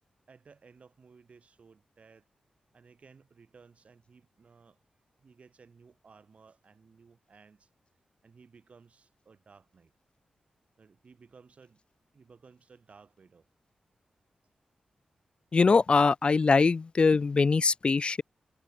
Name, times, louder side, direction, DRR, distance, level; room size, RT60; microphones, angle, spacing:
voice 1, 0.3-2.3 2.7-4.8 5.2-7.7 8.2-9.9 10.8-11.8 12.1-13.5, right 5 dB, 60° right, 3.9 m, -57 dB
voice 2, 15.5-18.2, left 4 dB, 45° left, 0.3 m, -22 dB
cardioid pair, 75°, 3 cm